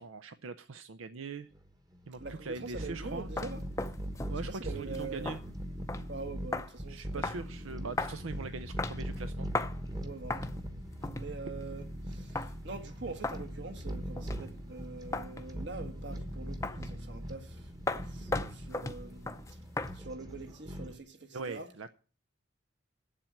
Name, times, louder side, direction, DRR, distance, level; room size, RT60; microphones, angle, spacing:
voice 1, 0.0-1.5 2.1-3.3 4.3-5.4 6.9-9.5 21.3-21.9, right 4 dB, 85° right, 0.6 m, -41 dB
sound 1, 1.5-21.0, equal, 20° right, 1.1 m, -41 dB
voice 2, 2.2-3.6 4.4-5.3 6.1-7.4 10.0-10.4 11.1-19.6 19.9-21.7, right 3 dB, 60° right, 1.6 m, -44 dB
sound 2, 3.1-3.2 3.4-4.3 4.8-5.5 5.9-6.1 6.5-6.7 7.2-7.4 8.0-8.2 8.8-9.2 9.5-9.8 10.3-10.6 11.0-11.3 12.4-12.5 13.2-13.4 14.2-14.5 15.1-15.5 16.6-16.9 17.9-20.0, left 2 dB, 15° left, 0.5 m, -35 dB
8.6 x 7.6 x 9.0 m
head